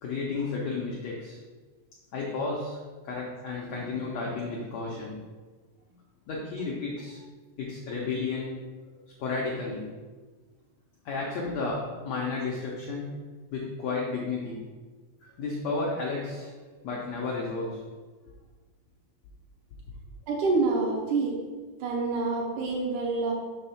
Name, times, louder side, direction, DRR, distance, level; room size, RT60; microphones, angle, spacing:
voice 1, 0.0-1.4 2.1-5.3 6.3-7.2 7.6-8.6 8.8-8.9 9.2-9.9 11.0-13.2 13.5-14.7 15.4-16.5 16.8-17.8, left 3 dB, 80° left, -3 dB, 1.5 m, -32 dB
voice 2, 20.3-21.5 21.8-23.3, right 3 dB, 70° right, -1 dB, 2.0 m, -27 dB
6.1 x 3.5 x 5.6 m, 1.4 s
omnidirectional pair, 4.1 m